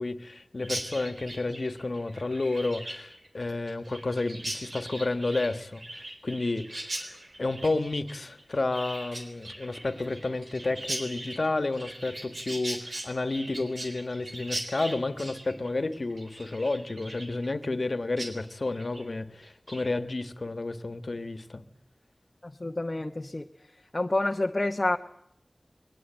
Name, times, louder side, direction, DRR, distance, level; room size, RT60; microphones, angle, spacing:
voice 1, 0.0-21.6, left 2 dB, 70° left, 1.4 m, -31 dB
Chirp tweet, 0.6-17.9 18.2-18.3 18.7-19.1 19.4-19.9, right 1 dB, 75° right, 4.0 m, -40 dB
voice 2, 22.4-23.4 23.9-25.0, left 2 dB, 40° left, 0.9 m, -28 dB
21.5 x 19.0 x 8.9 m
wide cardioid pair, 60°, 0 cm